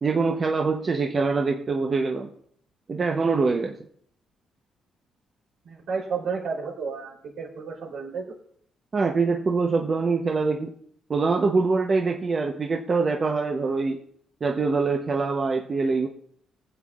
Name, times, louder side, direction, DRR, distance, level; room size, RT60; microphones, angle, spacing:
voice 1, 0.0-2.3 2.9-3.7 8.9-10.7 11.1-14.0 14.4-16.1, right 4 dB, 40° right, 2 dB, 0.8 m, -24 dB
voice 2, 5.6-8.4, right 5 dB, 80° right, -2 dB, 3.3 m, -32 dB
19.5 x 7.7 x 2.4 m, 0.65 s
cardioid pair, 90°, 0 cm